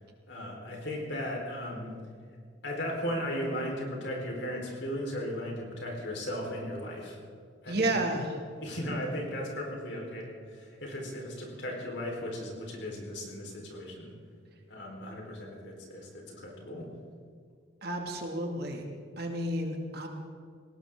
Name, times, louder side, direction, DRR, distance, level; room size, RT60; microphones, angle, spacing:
voice 1, 0.3-2.0 2.6-7.2 7.6-7.9 8.6-14.1 14.7-16.9, equal, 60° left, -1 dB, 4.4 m, -36 dB
voice 2, 7.7-8.4 17.8-18.8 19.2-20.1, right 1 dB, 55° right, 2 dB, 2.4 m, -31 dB
19.5 x 18.5 x 3.8 m, 2.1 s
head